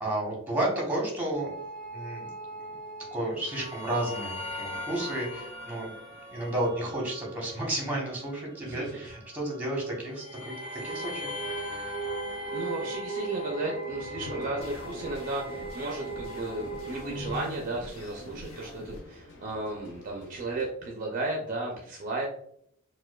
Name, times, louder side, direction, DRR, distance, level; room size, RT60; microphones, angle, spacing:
voice 1, 0.0-1.5 1.9-2.3 2.7-2.8 3.1-5.9 6.3-11.3, right 1 dB, 10° right, -3 dB, 0.9 m, -32 dB
sound 1, 1.3-17.4, right 1 dB, 25° left, 0.7 m, -39 dB
voice 2, 8.6-9.1 12.5-22.3, right 2 dB, 40° right, -1 dB, 0.4 m, -34 dB
sound 2, 13.9-20.7, left 2 dB, 55° left, 0.4 m, -47 dB
sound 3, 14.6-19.0, equal, 70° left, 0.9 m, -45 dB
4.4 x 2.2 x 2.2 m, 0.70 s
head